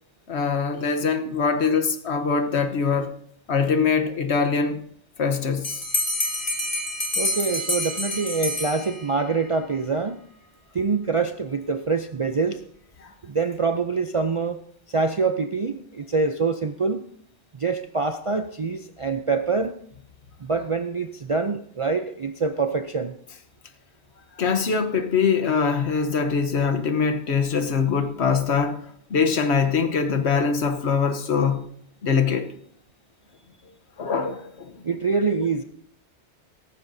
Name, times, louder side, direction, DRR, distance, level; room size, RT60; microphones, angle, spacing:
voice 1, 0.3-3.1 3.5-4.8 5.2-5.8 13.0-13.1 24.4-28.8 29.1-31.7 32.0-32.5 34.0-34.8, left 5 dB, 70° left, 1.3 m, -23 dB
Bell, 5.6-9.3, left 1 dB, 30° left, 2.4 m, -27 dB
voice 2, 7.2-10.2 10.7-12.6 13.2-14.6 14.9-17.0 17.5-19.7 20.4-23.1 34.8-35.6, right 4 dB, 45° right, 0.4 m, -25 dB
17.0 x 14.5 x 2.7 m
omnidirectional pair, 1.2 m